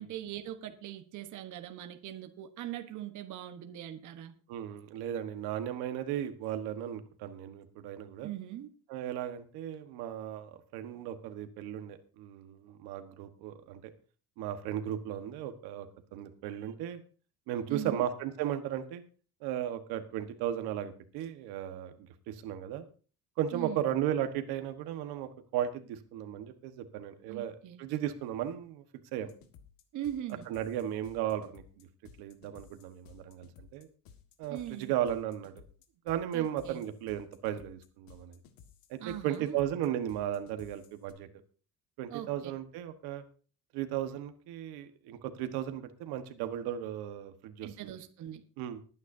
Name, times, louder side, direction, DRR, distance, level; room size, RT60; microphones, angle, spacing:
voice 1, 0.0-4.4 8.2-8.7 17.7-18.1 23.5-23.9 27.3-27.8 29.9-30.5 34.5-34.9 36.3-36.8 39.0-39.5 42.1-42.5 47.6-48.4, right 12 dB, 50° right, 6 dB, 1.2 m, -41 dB
voice 2, 4.5-8.3 8.9-13.8 14.4-17.0 17.5-19.0 19.4-21.9 22.3-22.8 23.4-28.8 29.1-29.3 30.5-31.9 32.2-33.9 34.4-35.5 36.0-38.4 38.9-41.3 42.0-43.2 43.7-47.7 48.6-48.8, right 11 dB, 85° right, 8 dB, 1.4 m, -35 dB
sound 1, 29.3-41.1, left 7 dB, 65° left, 1.7 m, -57 dB
20.0 x 9.5 x 2.7 m, 0.39 s
cardioid pair, 150°, 37 cm